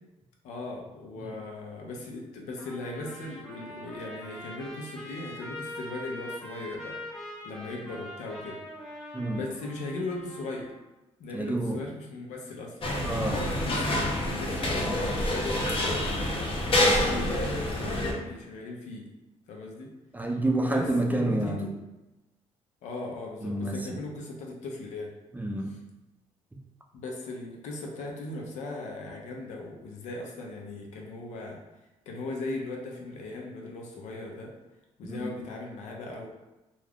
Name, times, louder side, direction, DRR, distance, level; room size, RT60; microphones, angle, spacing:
voice 1, 0.4-7.0 7.4-8.6 9.3-10.7 11.2-12.8 13.4-16.0 16.8-19.1 19.5-19.9 20.7-21.7 22.8-25.1 25.7-25.8 26.9-31.6 32.1-34.5 35.0-36.3, left 2 dB, 85° left, 0 dB, 0.6 m, -38 dB
Trumpet, 2.6-10.7, left 1 dB, ahead, 0.8 m, -43 dB
voice 2, 11.3-11.8 13.0-13.5 14.9-15.0 20.1-21.6 23.4-24.0 25.3-25.7 26.5-26.6 35.0-35.3, right 1 dB, 15° right, 2 dB, 0.4 m, -29 dB
sound 1, 12.8-18.1, left 1 dB, 50° left, 0.7 m, -27 dB
2.3 x 2.3 x 3.4 m, 1.0 s
cardioid pair, 75°, 12 cm